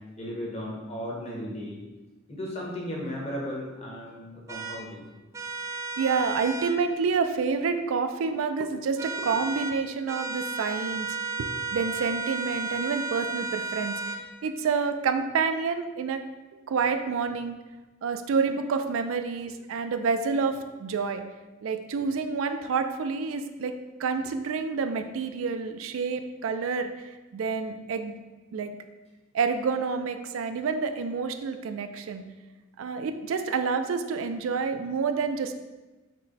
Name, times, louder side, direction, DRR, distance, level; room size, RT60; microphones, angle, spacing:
voice 1, 0.2-1.8 2.3-5.0, equal, 30° left, -3 dB, 1.0 m, -35 dB
sound 1, 4.5-4.8 5.3-6.8 9.0-9.8 10.1-14.2, right 4 dB, 15° right, 0.3 m, -33 dB
voice 2, 6.0-11.1 11.4-16.2 16.7-17.6 18.0-21.2 21.6-23.7 24.0-28.2 28.5-28.7 29.3-32.2 32.8-35.5, right 5 dB, 85° right, 8 dB, 0.4 m, -28 dB
6.2 x 2.1 x 3.9 m, 1.2 s
head